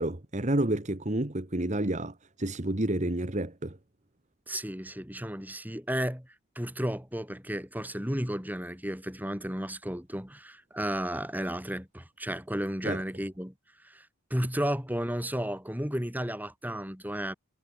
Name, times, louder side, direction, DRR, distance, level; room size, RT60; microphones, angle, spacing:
voice 1, 0.0-3.8 12.8-13.0, right 1 dB, 35° right, 1.4 m, -30 dB
voice 2, 4.5-13.5 13.8-17.3, equal, 10° right, 8.0 m, -33 dB
head